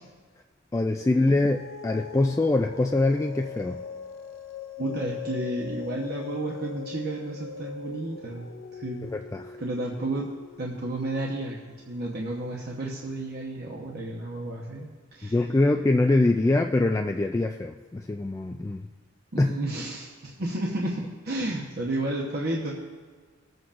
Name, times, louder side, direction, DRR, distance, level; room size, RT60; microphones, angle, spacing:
voice 1, 0.7-3.8 9.1-9.6 15.3-18.9 19.4-19.5, left 2 dB, 15° left, 3 dB, 0.3 m, -24 dB
sound 1, 1.0-13.8, left 8 dB, 80° left, 0.5 m, -42 dB
voice 2, 4.8-9.1 9.6-10.3 10.6-15.4 19.3-22.7, right 2 dB, 50° right, -3 dB, 1.0 m, -32 dB
19.0 x 7.8 x 2.5 m, 1.5 s
head